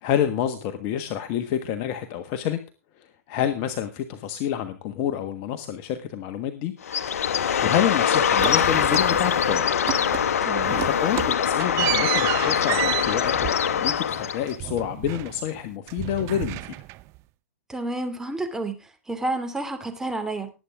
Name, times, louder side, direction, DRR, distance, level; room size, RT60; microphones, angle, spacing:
voice 1, 0.0-2.6 3.0-6.7 7.6-9.7 10.7-16.7, left 10 dB, 45° left, 7 dB, 1.5 m, -28 dB
Bird, 6.8-14.6, left 8 dB, 75° left, 1.0 m, -23 dB
sound 1, 8.4-9.6 9.9-10.4 10.6-15.6 15.9-17.2, right 19 dB, 35° right, 0.5 m, -31 dB
voice 2, 10.4-10.8 17.7-20.5, right 2 dB, 5° right, 6 dB, 2.6 m, -30 dB
19.0 x 8.7 x 3.6 m, 0.31 s
hypercardioid pair, 120°, 8 cm